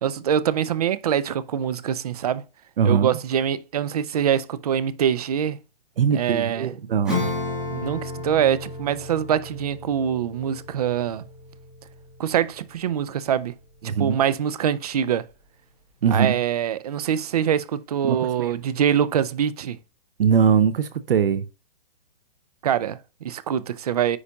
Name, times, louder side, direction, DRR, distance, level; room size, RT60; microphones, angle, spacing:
voice 1, 0.0-2.4 2.8-5.6 6.1-6.7 7.7-11.2 12.2-13.5 13.8-15.3 16.1-19.8 22.6-24.2, right 9 dB, 40° right, 0.5 m, -24 dB
voice 2, 2.8-3.2 6.0-7.3 13.8-14.2 16.0-16.4 18.0-18.5 20.2-21.5, right 7 dB, 70° right, 0.8 m, -21 dB
Acoustic guitar / Strum, 7.0-13.1, left 2 dB, 5° right, 1.8 m, -33 dB
9.7 x 4.1 x 2.3 m
hypercardioid pair, 170°, 29 cm